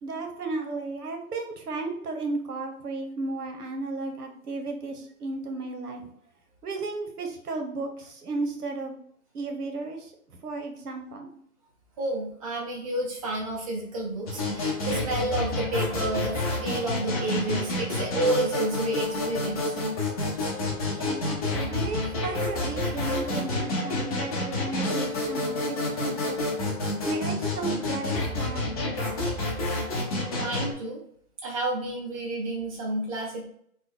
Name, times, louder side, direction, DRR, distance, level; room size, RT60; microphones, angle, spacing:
voice 1, 0.0-6.1 6.6-9.0 9.3-11.3 21.0-26.4 27.0-29.2, right 3 dB, 85° right, 3 dB, 0.9 m, -34 dB
voice 2, 12.0-19.8 20.3-21.1 30.4-31.0 31.4-33.4, right 2 dB, 25° right, -2 dB, 0.6 m, -30 dB
sound 1, 14.3-30.7, left 2 dB, 25° left, 0.7 m, -29 dB
3.3 x 2.1 x 3.6 m, 0.65 s
figure-of-eight pair, 140°, 45 cm